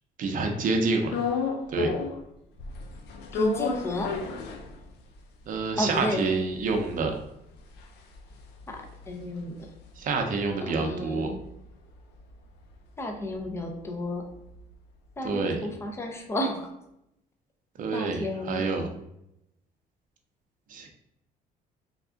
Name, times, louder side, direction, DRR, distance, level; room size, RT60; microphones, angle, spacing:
voice 1, 0.2-1.1 1.7-1.9 5.5-7.1 10.0-11.3 15.2-15.6 17.8-18.9 20.7-20.9, right 3 dB, 50° right, 3 dB, 0.7 m, -27 dB
sound 1, 1.1-2.3 2.6-5.2 5.6-5.7 5.8-10.3 10.7-14.7, left 5 dB, 75° left, 0.5 m, -34 dB
voice 2, 3.3-4.1 5.8-6.3 8.7-8.8 9.1-9.6 10.6-11.4 13.0-14.2 15.2-16.7 17.9-18.7, left 1 dB, 15° left, 3 dB, 0.6 m, -32 dB
3.6 x 2.3 x 3.6 m, 0.83 s
cardioid pair, 110°, 17 cm